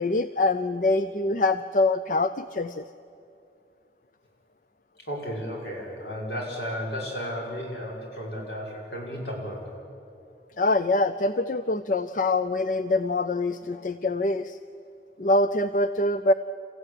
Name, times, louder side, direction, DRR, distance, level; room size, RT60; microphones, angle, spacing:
voice 1, 0.0-2.8 10.6-14.6 15.2-16.3, left 2 dB, 45° left, 12 dB, 0.5 m, -24 dB
voice 2, 5.0-9.8, equal, 70° left, -2 dB, 6.5 m, -34 dB
30.0 x 15.0 x 10.0 m, 2.6 s
head